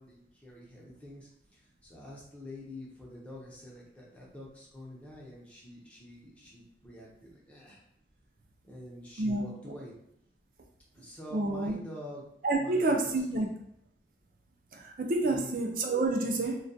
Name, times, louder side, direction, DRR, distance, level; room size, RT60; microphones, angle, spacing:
voice 1, 0.0-7.8 8.6-9.9 10.9-12.2 12.6-13.5 15.2-15.6, left 1 dB, 5° left, -5 dB, 0.5 m, -47 dB
voice 2, 11.3-11.7 12.4-13.5 14.7-16.6, right 2 dB, 50° right, 2 dB, 0.4 m, -28 dB
2.3 x 2.2 x 2.6 m, 0.76 s
head